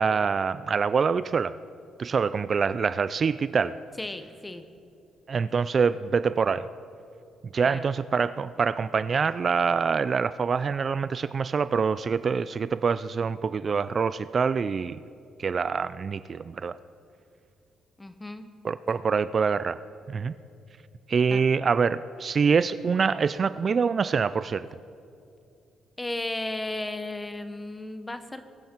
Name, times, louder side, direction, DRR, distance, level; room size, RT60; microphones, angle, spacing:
voice 1, 0.0-1.5 2.0-3.8 5.3-6.7 7.5-15.0 15.4-16.8 18.6-19.8 20.1-20.3 21.1-24.7, right 5 dB, 45° right, 15 dB, 0.3 m, -25 dB
voice 2, 4.0-4.6 7.6-7.9 18.0-18.4 21.3-21.4 26.0-28.5, left 2 dB, 15° left, 10 dB, 1.0 m, -34 dB
22.0 x 9.1 x 4.5 m, 2.5 s
cardioid pair, 90°, 0 cm